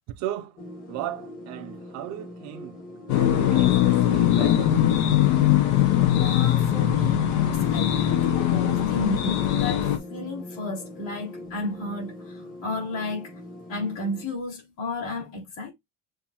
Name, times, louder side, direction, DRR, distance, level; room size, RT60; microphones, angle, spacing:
voice 1, 0.2-0.6 0.9-2.8 3.1-4.8, right 12 dB, 50° right, 0.5 m, -36 dB
sound 1, 0.6-14.2, left 1 dB, 25° left, 1.1 m, -42 dB
sound 2, 3.1-10.0, left 12 dB, 85° left, 0.9 m, -21 dB
voice 2, 6.1-13.3 13.7-15.7, left 2 dB, 55° left, 3.5 m, -33 dB
6.8 x 2.6 x 2.8 m
cardioid pair, 175°, 36 cm